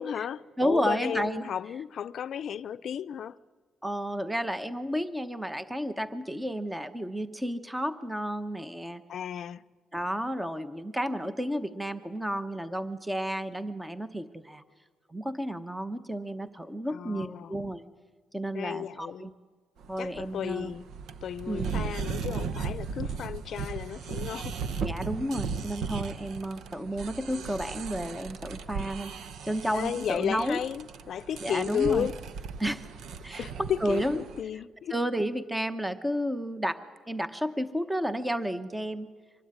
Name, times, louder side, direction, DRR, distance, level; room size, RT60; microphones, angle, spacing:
voice 1, 0.0-3.4 9.1-9.6 16.9-17.6 18.5-19.3 20.0-20.9 21.2-24.6 29.7-32.1 33.4-35.0, left 9 dB, 55° left, 0.7 m, -33 dB
voice 2, 0.6-1.5 3.8-9.0 9.9-14.6 15.1-17.8 18.3-19.3 19.9-20.7 21.5-21.7 24.8-29.1 29.4-30.6 31.4-32.1 32.6-32.9 33.2-34.2 34.9-39.1, equal, 5° right, 1.0 m, -32 dB
sound 1, 19.8-34.4, right 5 dB, 65° right, 1.1 m, -37 dB
24.5 x 20.5 x 9.6 m
cardioid pair, 155°, 0 cm